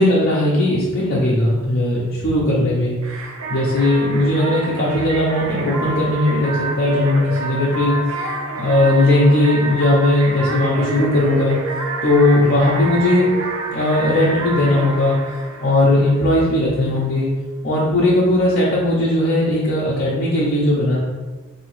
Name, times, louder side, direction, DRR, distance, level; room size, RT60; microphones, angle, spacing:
voice 1, 0.0-2.9 3.5-8.3 8.6-11.6 12.0-13.3 13.7-15.2 15.6-17.3 17.6-21.0, left 1 dB, 45° left, -6 dB, 0.6 m, -17 dB
sound 1, 3.0-16.5, right 2 dB, 75° right, 0.6 m, -28 dB
3.9 x 2.7 x 3.1 m, 1.2 s
head